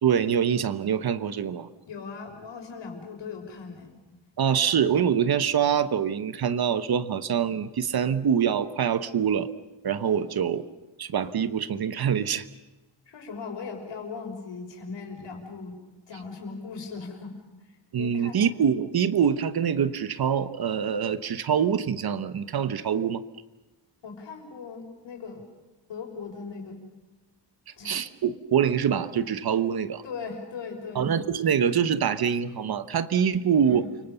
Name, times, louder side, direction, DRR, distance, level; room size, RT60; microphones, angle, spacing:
voice 1, 0.0-1.7 4.4-9.5 9.8-10.7 11.0-12.5 17.9-23.2 27.8-30.0 30.9-33.9, right 8 dB, 55° right, 13 dB, 1.1 m, -25 dB
voice 2, 1.9-3.9 13.1-15.8 16.1-17.4 18.0-18.4 24.0-25.5 25.9-26.8 27.8-28.0 30.0-31.1 33.6-34.0, left 5 dB, 80° left, 2 dB, 6.3 m, -38 dB
29.0 x 24.5 x 6.9 m, 1.1 s
wide cardioid pair, 165°, 43 cm